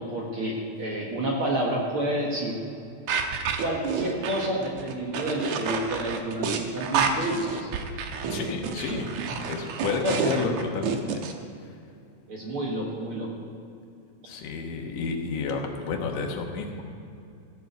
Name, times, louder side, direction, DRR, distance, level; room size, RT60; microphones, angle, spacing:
voice 1, 0.0-2.6 3.6-7.7 10.0-10.6 12.3-13.5, right 1 dB, 50° right, -2 dB, 1.9 m, -29 dB
sound 1, 3.1-11.3, right 6 dB, 70° right, 2.0 m, -29 dB
voice 2, 8.3-9.1 9.5-11.2 14.3-16.8, left 4 dB, 80° left, 2 dB, 2.8 m, -31 dB
15.5 x 6.2 x 8.1 m, 2.6 s
omnidirectional pair, 3.8 m